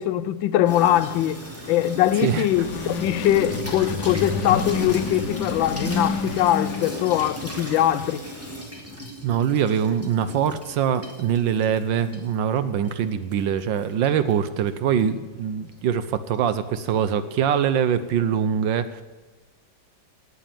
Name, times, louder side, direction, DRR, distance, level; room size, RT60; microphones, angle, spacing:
voice 1, 0.0-1.4 1.7-8.2, left 12 dB, 85° left, 1.4 m, -22 dB
Water tap faucet / Sink (filling or washing), 0.7-18.1, equal, 5° right, 2.3 m, -39 dB
sound 1, 2.1-7.4, left 4 dB, 65° left, 1.6 m, -29 dB
voice 2, 9.2-19.0, right 8 dB, 75° right, 1.4 m, -23 dB
18.0 x 7.4 x 9.0 m
omnidirectional pair, 2.0 m